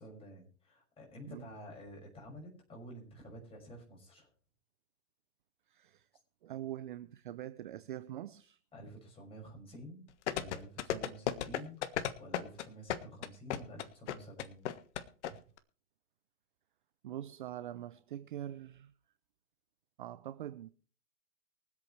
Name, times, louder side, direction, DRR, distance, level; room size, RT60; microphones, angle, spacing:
voice 1, 0.0-4.3 8.7-10.1 10.3-14.7, equal, 10° left, 6.1 m, -50 dB
voice 2, 5.7-6.0 6.4-8.6 10.9-11.1 15.3-15.4 17.0-18.9 20.0-20.7, right 12 dB, 35° right, 0.5 m, -44 dB
sound 1, 10.3-15.3 15.6-15.7, left 10 dB, 50° left, 1.5 m, -34 dB
24.0 x 8.4 x 3.2 m
hypercardioid pair, 155°, 46 cm